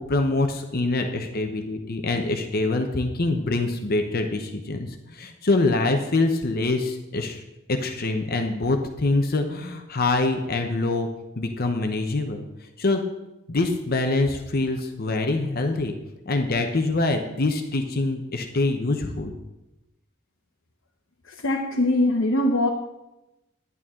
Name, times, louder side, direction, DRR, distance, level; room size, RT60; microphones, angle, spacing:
voice 1, 0.0-7.4 7.7-11.1 11.4-13.0 13.5-15.9 16.3-19.4, left 2 dB, 50° left, 5 dB, 0.8 m, -25 dB
voice 2, 21.3-22.7, left 1 dB, 75° left, 0 dB, 1.0 m, -22 dB
11.0 x 11.0 x 3.7 m, 0.97 s
head